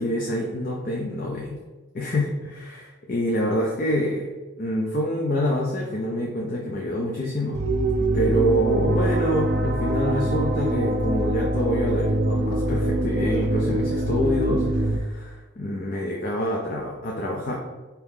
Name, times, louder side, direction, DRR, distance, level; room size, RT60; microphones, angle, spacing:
voice 1, 0.0-1.6 1.9-4.2 4.6-7.6 8.0-17.5, equal, 40° left, -2 dB, 0.5 m, -26 dB
sound 1, 7.5-15.0, right 1 dB, 50° right, 0.4 m, -24 dB
4.6 x 2.9 x 3.6 m, 1.2 s
head